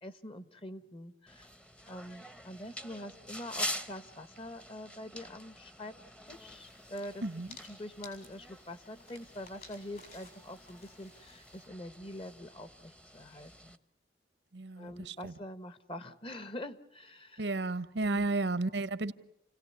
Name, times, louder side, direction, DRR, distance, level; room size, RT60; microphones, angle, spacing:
voice 1, 0.0-1.5 1.9-6.0 6.3-7.2 7.6-13.8 14.8-17.6 18.0-18.3, left 1 dB, 30° left, 1.3 m, -45 dB
sound 1, 1.3-13.8, equal, 5° left, 0.9 m, -46 dB
sound 2, 6.3-11.7, left 4 dB, 55° left, 7.6 m, -56 dB
voice 2, 14.5-15.3 17.4-19.1, right 2 dB, 75° right, 1.0 m, -33 dB
29.0 x 17.5 x 9.7 m
head